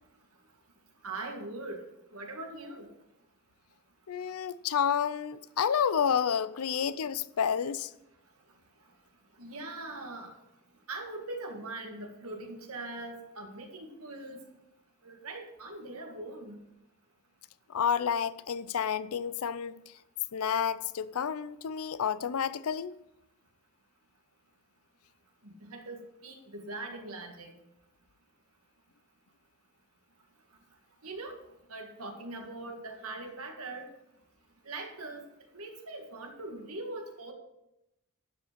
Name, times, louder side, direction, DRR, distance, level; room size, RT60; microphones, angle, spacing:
voice 1, 1.0-1.8 2.1-2.9 9.4-10.3 10.9-14.4 15.0-16.6 25.4-27.5 31.0-31.4 31.7-33.9 34.6-35.3 35.5-37.3, right 2 dB, 80° right, 1.9 m, -41 dB
voice 2, 4.1-7.9 17.7-19.8 20.3-23.0, left 7 dB, 80° left, 0.5 m, -30 dB
12.0 x 5.1 x 6.8 m
head